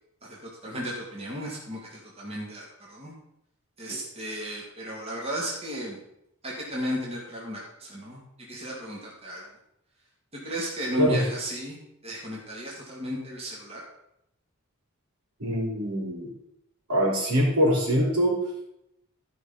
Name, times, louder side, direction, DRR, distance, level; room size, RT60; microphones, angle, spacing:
voice 1, 0.2-3.1 3.8-6.0 6.4-8.2 8.5-9.5 10.4-13.8, equal, 25° right, -4 dB, 2.1 m, -34 dB
voice 2, 15.4-16.3 16.9-18.4, equal, 80° right, -2 dB, 4.0 m, -23 dB
13.0 x 5.3 x 5.5 m, 0.80 s
head